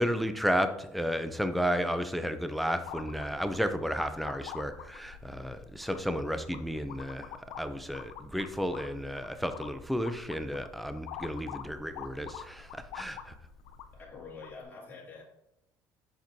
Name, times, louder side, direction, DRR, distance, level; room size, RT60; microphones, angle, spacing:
voice 1, 0.0-13.3, equal, ahead, 9 dB, 0.4 m, -32 dB
sound 1, 2.8-14.6, left 9 dB, 80° left, 0.5 m, -46 dB
voice 2, 13.9-15.2, left 4 dB, 25° left, -4 dB, 2.4 m, -46 dB
7.2 x 5.9 x 2.6 m, 0.84 s
cardioid pair, 130°, 7 cm